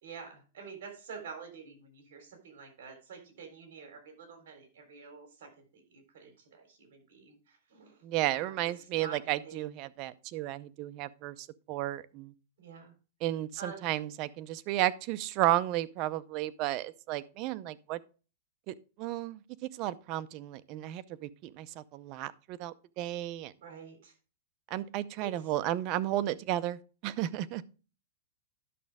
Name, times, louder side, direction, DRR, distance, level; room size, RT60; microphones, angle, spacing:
voice 1, 0.0-8.0 8.3-9.6 12.6-12.9 13.6-13.9 23.6-24.1 25.2-25.5, right 5 dB, 70° right, 3.8 m, -48 dB
voice 2, 8.0-12.3 13.2-18.0 18.7-19.4 19.7-23.5 24.7-27.6, right 14 dB, 40° right, 0.6 m, -33 dB
11.0 x 6.3 x 3.5 m
supercardioid pair, 150°, 0 cm